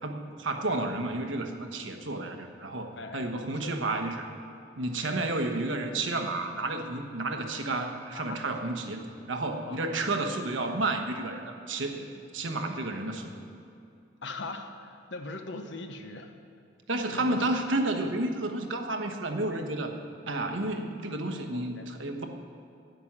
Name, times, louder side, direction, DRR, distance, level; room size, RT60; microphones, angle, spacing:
voice 1, 0.0-4.3 4.8-12.1 12.3-13.4 16.9-19.9 20.3-22.2, right 2 dB, 80° right, 5 dB, 1.2 m, -31 dB
voice 2, 2.9-3.8 5.0-5.2 8.1-8.5 9.6-10.0 14.2-16.3 17.1-17.6 20.5-20.7 21.5-21.9, left 3 dB, 65° left, 6 dB, 1.0 m, -41 dB
10.5 x 9.2 x 7.4 m, 2.5 s
head